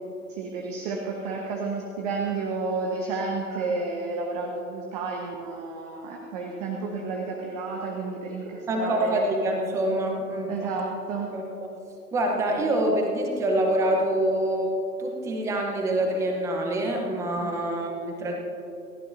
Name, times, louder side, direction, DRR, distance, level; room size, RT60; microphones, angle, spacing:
voice 1, 0.3-9.3 10.5-11.3 17.4-17.5, right 4 dB, 25° right, 0 dB, 1.2 m, -31 dB
voice 2, 8.7-10.7 11.3-11.4 12.1-18.3, right 1 dB, 5° right, 2 dB, 0.9 m, -26 dB
28.0 x 11.5 x 2.7 m, 2.8 s
figure-of-eight pair, 130°, 48 cm